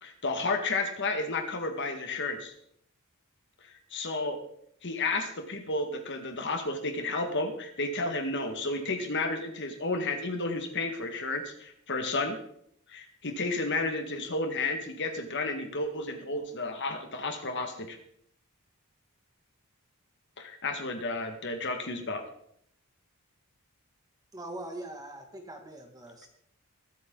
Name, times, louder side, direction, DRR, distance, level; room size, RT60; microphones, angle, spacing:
voice 1, 0.0-2.5 3.9-4.4 4.8-12.4 12.9-18.0 20.4-22.2, left 3 dB, 55° left, 6 dB, 1.8 m, -32 dB
voice 2, 24.3-26.3, right 1 dB, 15° right, 3 dB, 2.2 m, -42 dB
22.0 x 8.6 x 3.9 m, 0.69 s
head